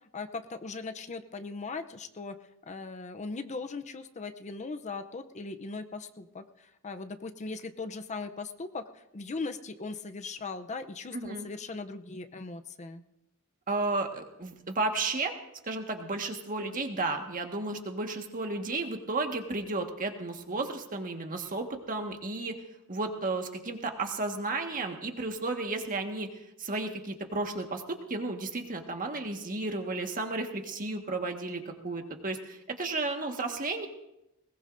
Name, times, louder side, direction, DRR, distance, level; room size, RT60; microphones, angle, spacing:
voice 1, 0.1-2.4 2.7-13.0, left 3 dB, 35° left, 8 dB, 0.6 m, -39 dB
voice 2, 11.1-11.5 13.7-15.3 15.7-22.6 22.9-26.3 26.6-27.8 28.1-33.9, right 3 dB, 40° right, 4 dB, 1.6 m, -33 dB
20.5 x 20.5 x 2.6 m, 0.88 s
head